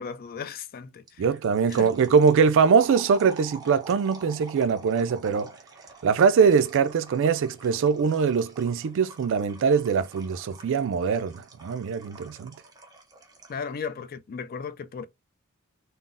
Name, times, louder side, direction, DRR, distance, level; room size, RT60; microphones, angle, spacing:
voice 1, 0.0-1.2 1.7-1.9 13.5-15.0, left 6 dB, 45° left, 0.4 m, -36 dB
sound 1, 1.1-13.7, right 3 dB, 20° right, 0.6 m, -47 dB
voice 2, 1.2-5.5 6.0-12.5, right 6 dB, 60° right, 0.3 m, -22 dB
3.7 x 2.0 x 2.4 m
head